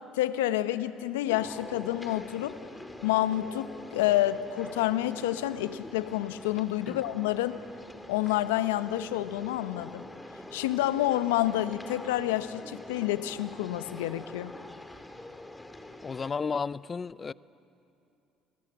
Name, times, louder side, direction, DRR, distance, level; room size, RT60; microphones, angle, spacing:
voice 1, 0.1-2.6 3.0-7.6 8.1-10.0 10.5-14.6, left 14 dB, 85° left, 13 dB, 0.9 m, -28 dB
sound 1, 1.3-16.3, left 1 dB, 15° left, 2.5 m, -45 dB
voice 2, 16.0-17.3, left 5 dB, 35° left, 20 dB, 0.5 m, -33 dB
29.5 x 20.5 x 8.6 m, 2.7 s
hypercardioid pair, 60°, 0 cm